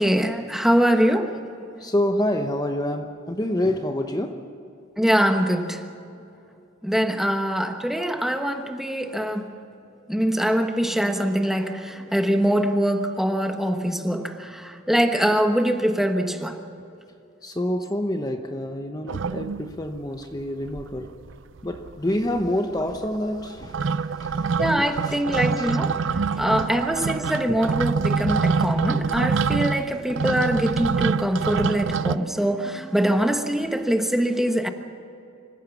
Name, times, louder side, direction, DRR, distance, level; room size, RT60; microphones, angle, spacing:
voice 1, 0.0-1.7 5.0-5.9 6.8-9.5 10.1-16.6 24.6-34.7, equal, ahead, 1.2 m, -23 dB
voice 2, 1.8-4.5 17.4-21.2 21.6-25.7 26.3-26.4 27.5-27.6 29.8-29.9, left 1 dB, 20° left, 0.9 m, -28 dB
sound 1, 19.1-20.0 20.4-20.5 20.7-21.3 21.6-32.2, right 5 dB, 70° right, 0.5 m, -26 dB
25.5 x 15.5 x 7.1 m
head